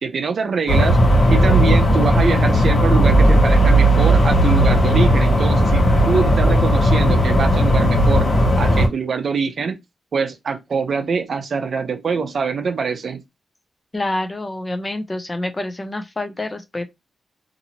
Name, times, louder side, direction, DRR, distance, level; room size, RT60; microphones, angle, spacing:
voice 1, 0.0-1.0 1.3-8.3 8.6-9.8 10.1-13.2, right 5 dB, 50° right, 0.5 m, -23 dB
sound 1, 0.7-8.9, equal, 55° left, 1.1 m, -15 dB
voice 2, 13.9-16.8, left 2 dB, 20° left, 0.4 m, -27 dB
2.8 x 2.6 x 2.8 m
wide cardioid pair, 155°, 0 cm